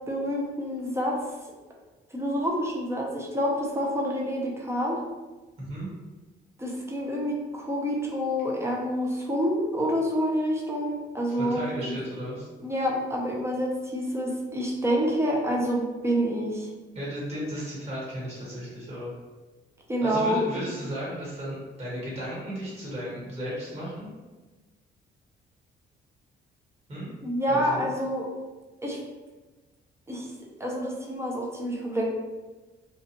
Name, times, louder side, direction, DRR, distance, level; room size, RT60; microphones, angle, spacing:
voice 1, 0.1-1.2 2.1-5.0 6.6-11.9 12.6-16.7 19.9-20.4 27.2-28.3 28.8-29.0 30.1-30.3 30.6-32.1, equal, 15° right, -2 dB, 0.6 m, -27 dB
voice 2, 5.6-5.9 11.3-12.5 16.9-19.2 20.0-24.1 26.9-27.1 27.5-27.9, equal, 30° right, -6 dB, 1.5 m, -35 dB
2.5 x 2.3 x 2.9 m, 1.2 s
cardioid pair, 90°, 20 cm